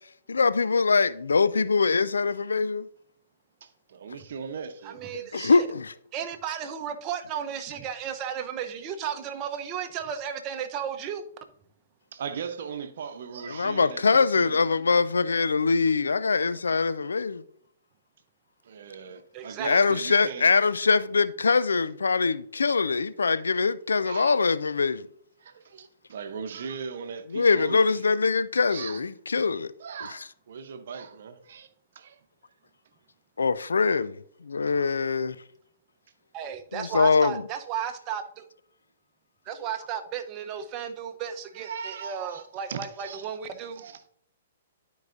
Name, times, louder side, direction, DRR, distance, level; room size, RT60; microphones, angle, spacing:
voice 1, 0.3-2.9 5.3-5.9 13.5-17.4 19.6-25.1 27.3-29.7 33.4-35.4 36.7-37.4, left 4 dB, 85° left, 0.3 m, -23 dB
voice 2, 3.6-5.0 12.1-14.6 18.6-20.5 24.1-24.4 25.4-28.0 28.7-29.0 29.4-29.5 29.8-31.7 31.9-32.2 41.5-43.3 43.8-44.0, right 6 dB, 65° right, 0.8 m, -38 dB
voice 3, 4.8-5.7 6.1-11.2 19.3-19.8 36.3-38.4 39.5-43.8, right 8 dB, 35° right, 0.8 m, -34 dB
12.0 x 4.7 x 2.6 m
hypercardioid pair, 130°, 0 cm